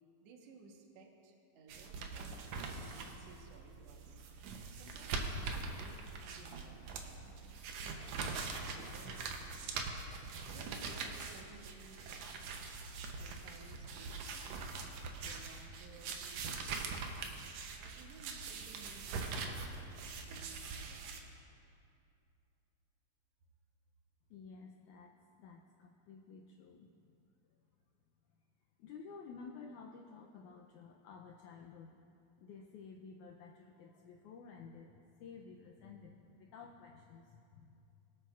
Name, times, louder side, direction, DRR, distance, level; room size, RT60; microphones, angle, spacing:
voice 1, 0.2-4.2 4.8-9.9 10.4-12.6 13.2-14.7 15.2-17.0 17.8-21.2, right 3 dB, 60° right, 1 dB, 1.8 m, -58 dB
sound 1, 1.7-21.2, right 4 dB, 80° right, 1.5 m, -43 dB
voice 2, 24.3-25.1 25.4-27.0 28.8-32.0 32.4-37.9, left 5 dB, 80° left, 1 dB, 1.8 m, -53 dB
22.5 x 8.6 x 2.4 m, 2.6 s
omnidirectional pair, 4.0 m